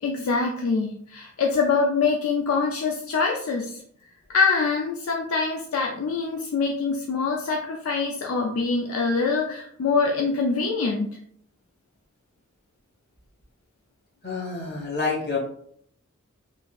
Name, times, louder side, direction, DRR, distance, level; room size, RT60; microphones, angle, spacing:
voice 1, 0.0-3.8 4.3-11.1, left 4 dB, 80° left, 0 dB, 0.4 m, -24 dB
voice 2, 14.2-15.4, left 4 dB, 50° left, -4 dB, 1.3 m, -28 dB
3.8 x 2.6 x 2.4 m, 0.66 s
head